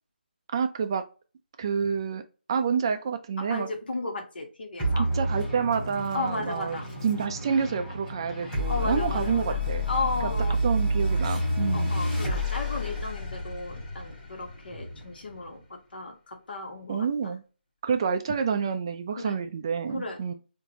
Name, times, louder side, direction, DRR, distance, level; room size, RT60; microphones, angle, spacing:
voice 1, 0.5-1.0 1.6-2.2 2.5-3.7 5.0-9.9 10.2-10.3 10.6-11.9 16.9-17.4 17.8-20.3, right 6 dB, 25° right, 7 dB, 0.3 m, -28 dB
voice 2, 3.4-5.1 6.1-6.9 8.7-9.6 9.9-10.6 11.7-17.3 19.2-19.4 19.9-20.3, left 2 dB, 65° left, 3 dB, 1.4 m, -34 dB
sound 1, 4.8-15.6, equal, 10° left, 2.3 m, -30 dB
4.7 x 2.6 x 3.0 m, 0.34 s
figure-of-eight pair, 165°, 6 cm